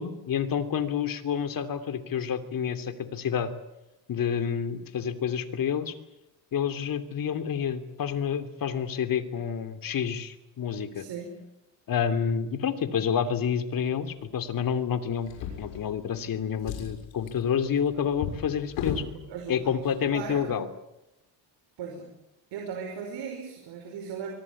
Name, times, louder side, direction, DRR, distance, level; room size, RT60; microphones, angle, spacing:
voice 1, 0.0-3.5 4.1-5.9 6.5-11.0 11.9-19.0 19.5-20.7, left 7 dB, 50° left, 10 dB, 3.0 m, -29 dB
voice 2, 10.9-11.4 19.3-19.8 20.1-20.6 21.8-22.1 22.5-24.3, right 6 dB, 70° right, 2 dB, 5.5 m, -37 dB
Drawer open or close, 15.2-16.2 16.5-19.1 20.0-20.2 20.5-20.6, left 7 dB, 90° left, 6.6 m, -36 dB
24.0 x 23.5 x 8.6 m, 0.91 s
cardioid pair, 100°, 44 cm